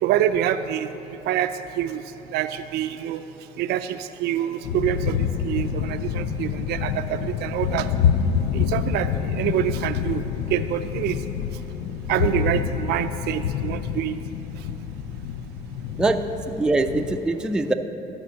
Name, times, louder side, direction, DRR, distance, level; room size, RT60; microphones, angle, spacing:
voice 1, 0.0-2.0 2.3-3.2 3.6-7.9 8.5-11.2 12.1-14.2, right 11 dB, 75° right, 9 dB, 0.4 m, -26 dB
sound 1, 4.6-17.2, left 8 dB, 90° left, 0.4 m, -27 dB
voice 2, 16.0-17.7, right 2 dB, 5° right, 6 dB, 0.4 m, -23 dB
12.0 x 5.1 x 6.8 m, 3.0 s
cardioid pair, 110°, 17 cm